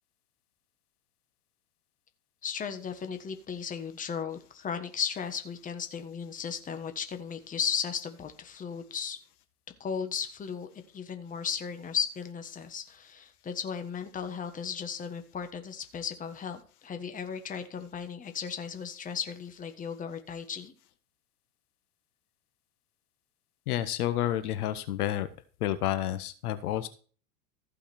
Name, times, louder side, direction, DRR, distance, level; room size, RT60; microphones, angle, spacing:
voice 1, 2.4-9.2 9.8-10.7 10.9-20.7, left 7 dB, 15° left, 7 dB, 1.4 m, -35 dB
voice 2, 23.7-25.3 25.6-26.9, left 12 dB, 70° left, 11 dB, 1.5 m, -30 dB
15.0 x 5.7 x 4.3 m, 0.40 s
hypercardioid pair, 120°, 47 cm